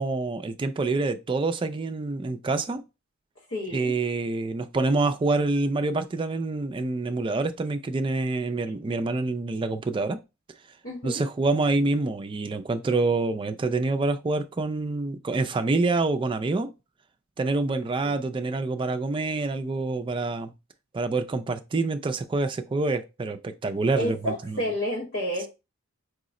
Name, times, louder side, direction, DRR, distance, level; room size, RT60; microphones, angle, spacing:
voice 1, 0.0-2.8 3.7-10.2 11.0-16.7 17.4-20.5 20.9-24.6, right 3 dB, 20° right, 0.3 m, -26 dB
voice 2, 3.5-3.9 10.8-11.3 24.0-25.5, equal, 65° left, 1.3 m, -30 dB
4.8 x 2.0 x 3.6 m
head